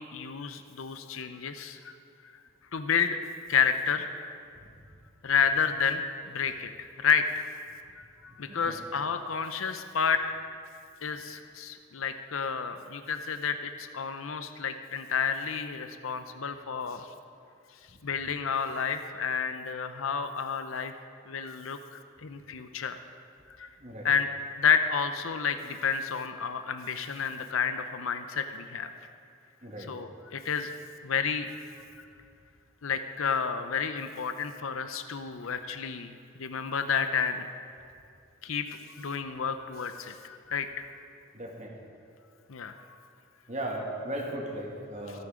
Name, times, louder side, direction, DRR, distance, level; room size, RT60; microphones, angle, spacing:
voice 1, 0.0-1.9 2.7-3.2 3.5-4.2 5.2-7.4 8.0-10.2 11.0-17.1 18.0-20.9 21.3-23.0 23.6-23.7 24.0-24.3 24.6-28.9 29.9-30.7 31.0-31.5 32.0-32.1 32.8-36.1 36.4-37.5 38.4-40.9 42.5-43.0 45.1-45.2, left 6 dB, 80° left, 9 dB, 0.7 m, -30 dB
voice 2, 8.3-8.8 23.8-24.1 29.6-29.9 41.3-41.7 43.5-45.2, right 1 dB, 35° right, -1 dB, 2.1 m, -37 dB
24.5 x 8.4 x 5.1 m, 2.4 s
head